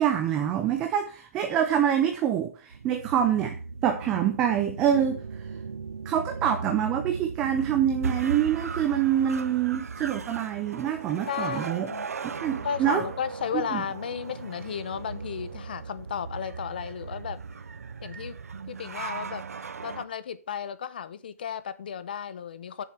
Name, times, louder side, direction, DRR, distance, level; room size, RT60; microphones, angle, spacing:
voice 1, 0.0-5.2 6.1-11.9 12.4-13.0 13.7-13.8, right 9 dB, 10° right, 0.4 m, -26 dB
sound 1, 2.7-20.0, right 5 dB, 75° right, 0.7 m, -37 dB
voice 2, 11.3-12.1 12.6-17.4 18.0-18.4 18.7-19.4 19.8-22.8, left 8 dB, 40° left, 0.8 m, -34 dB
7.5 x 6.6 x 6.4 m
hypercardioid pair, 175°, 8 cm